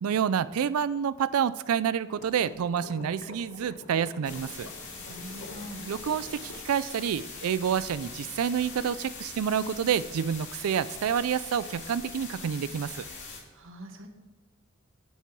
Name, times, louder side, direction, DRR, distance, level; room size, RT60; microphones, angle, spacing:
voice 1, 0.0-4.7 5.9-13.1, right 8 dB, 90° right, 15 dB, 0.4 m, -28 dB
sound 1, 2.2-6.6, left 2 dB, 85° left, 1.3 m, -46 dB
sound 2, 4.2-13.4, left 4 dB, 60° left, 3.0 m, -42 dB
voice 2, 5.1-5.8 13.5-14.1, equal, 65° right, 4 dB, 1.3 m, -43 dB
9.1 x 7.4 x 4.6 m, 1.3 s
head